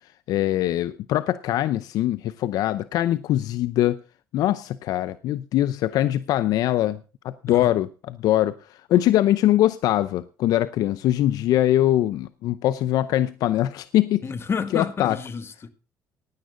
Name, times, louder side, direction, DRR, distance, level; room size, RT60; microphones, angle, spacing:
voice 1, 0.3-4.0 4.3-7.0 7.2-8.5 8.9-14.2 14.7-15.2, left 13 dB, 75° left, 0.6 m, -22 dB
voice 2, 14.2-15.7, left 5 dB, 40° left, 1.7 m, -30 dB
16.0 x 10.5 x 3.8 m
supercardioid pair, 80°, 6 cm